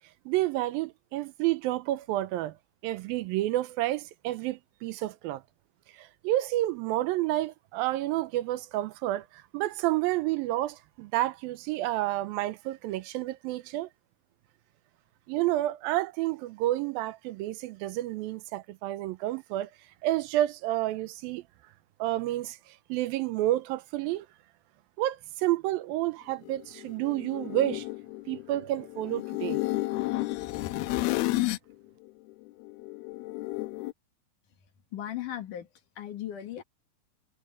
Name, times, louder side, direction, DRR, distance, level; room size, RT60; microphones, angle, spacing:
voice 1, 0.3-2.6 2.8-5.4 5.9-13.9 15.3-19.7 20.0-21.4 22.0-24.3 25.0-27.9 28.3-29.6, right 15 dB, 85° right, 2.4 m, -30 dB
sound 1, 26.4-31.7 32.1-33.9, left 18 dB, 85° left, 2.7 m, -32 dB
voice 2, 34.9-35.7 36.0-36.6, left 11 dB, 60° left, 3.1 m, -36 dB
omnidirectional pair, 4.3 m